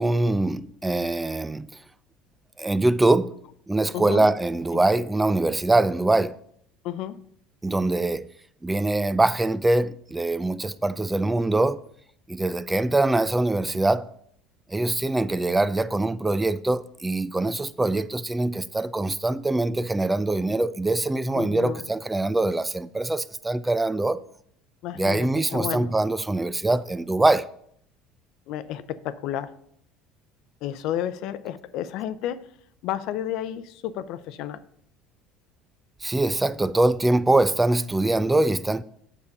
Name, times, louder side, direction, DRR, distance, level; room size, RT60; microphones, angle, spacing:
voice 1, 0.0-1.8 2.6-3.4 3.7-6.4 7.6-8.3 8.6-11.8 12.3-14.1 14.7-24.2 25.0-27.5 36.0-38.8, right 2 dB, 10° right, 0.4 m, -23 dB
voice 2, 3.9-4.3 4.7-4.8 6.8-7.2 21.3-21.9 24.8-25.9 28.5-29.5 30.6-32.4 32.8-34.6, left 11 dB, 65° left, 0.6 m, -31 dB
7.3 x 6.7 x 5.2 m
supercardioid pair, 90°, 0 cm